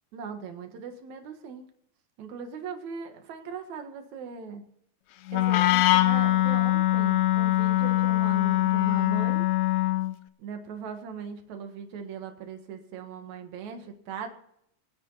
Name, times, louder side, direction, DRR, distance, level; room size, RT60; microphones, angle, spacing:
voice 1, 0.1-1.7 2.2-4.6 5.3-9.5 10.4-14.3, right 6 dB, 70° right, 6 dB, 2.9 m, -39 dB
Wind instrument woodwind instrument, 5.3-10.2, left 16 dB, 75° left, 1.9 m, -23 dB
22.5 x 10.0 x 4.0 m, 0.75 s
omnidirectional pair, 3.5 m